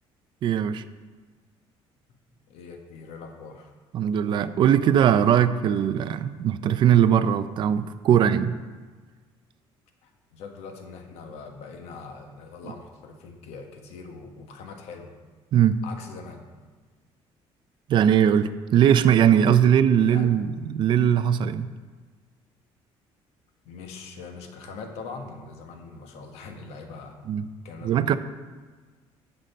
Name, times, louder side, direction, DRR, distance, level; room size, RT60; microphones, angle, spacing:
voice 1, 0.4-0.8 3.9-8.5 15.5-15.8 17.9-21.7 27.3-27.4 27.8-28.2, right 9 dB, 50° right, 12 dB, 0.4 m, -20 dB
voice 2, 2.5-3.7 10.0-15.1 15.8-16.4 20.0-20.3 23.6-27.2 27.6-28.2, left 4 dB, 80° left, 4 dB, 1.3 m, -42 dB
10.0 x 6.6 x 4.3 m, 1.4 s
cardioid pair, 140°, 11 cm